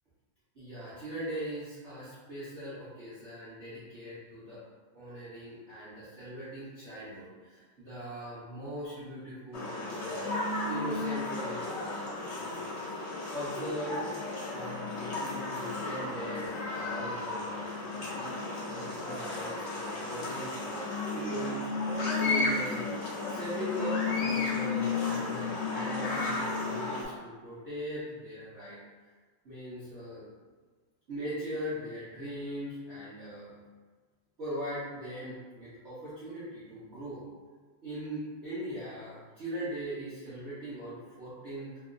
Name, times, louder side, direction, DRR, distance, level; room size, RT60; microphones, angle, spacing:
voice 1, 0.5-4.6 4.9-10.3 10.7-12.6 13.3-14.1 14.5-21.7 22.2-22.8 23.3-28.8 29.4-30.3 31.1-33.5 34.4-37.2 37.8-41.9, right 1 dB, 50° right, -12 dB, 0.8 m, -40 dB
sound 1, 9.5-27.0, left 3 dB, 50° left, 0.9 m, -33 dB
3.3 x 2.9 x 2.5 m, 1.5 s
omnidirectional pair, 2.2 m